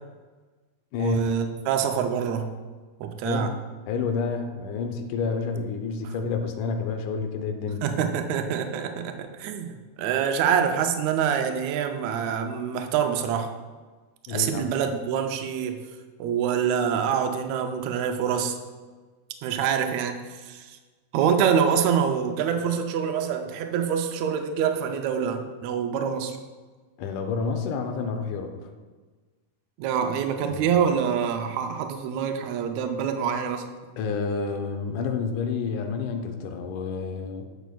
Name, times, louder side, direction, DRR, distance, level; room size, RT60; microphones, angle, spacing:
voice 1, 1.0-2.5 3.0-3.5 6.0-6.1 7.8-13.5 14.3-15.8 16.2-18.6 19.4-20.8 21.1-26.4 29.8-33.7, right 7 dB, 80° right, 5 dB, 1.7 m, -26 dB
voice 2, 3.9-7.8 14.3-14.7 27.0-28.5 30.5-30.7 34.0-37.4, left 5 dB, 90° left, 5 dB, 2.2 m, -29 dB
8.9 x 8.0 x 2.3 m, 1.4 s
omnidirectional pair, 3.4 m